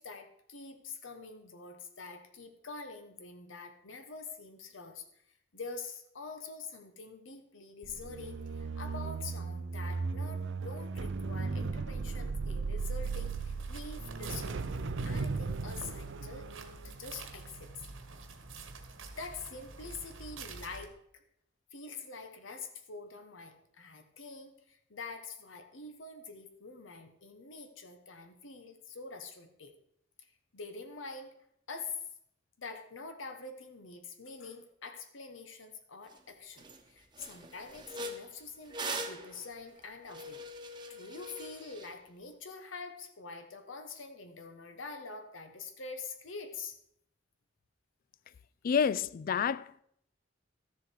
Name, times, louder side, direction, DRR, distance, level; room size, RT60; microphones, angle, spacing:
voice 1, 0.0-5.2 5.5-16.5 16.8-17.7 19.2-21.2 21.7-29.7 30.5-31.3 31.7-32.0 32.6-46.8, left 4 dB, 80° left, 1.2 m, -45 dB
sound 1, 7.8-18.1 18.5-18.8, right 4 dB, 65° right, 0.5 m, -37 dB
sound 2, 12.8-20.9, right 3 dB, 85° right, 1.4 m, -48 dB
sound 3, 36.1-36.2 36.6-36.8 37.1-41.9, right 1 dB, 25° right, 1.0 m, -42 dB
voice 2, 48.6-49.8, left 7 dB, 45° left, 0.3 m, -29 dB
13.0 x 7.2 x 4.7 m
head